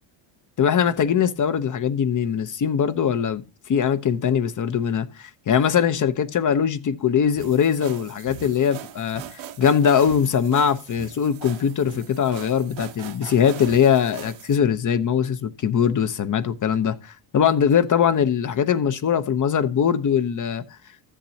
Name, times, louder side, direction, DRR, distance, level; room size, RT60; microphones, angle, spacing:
voice 1, 0.6-20.6, left 8 dB, 40° left, 0.8 m, -21 dB
sound 1, 7.4-14.6, right 10 dB, 65° right, 1.1 m, -40 dB
13.0 x 7.5 x 2.8 m
supercardioid pair, 85°, 49 cm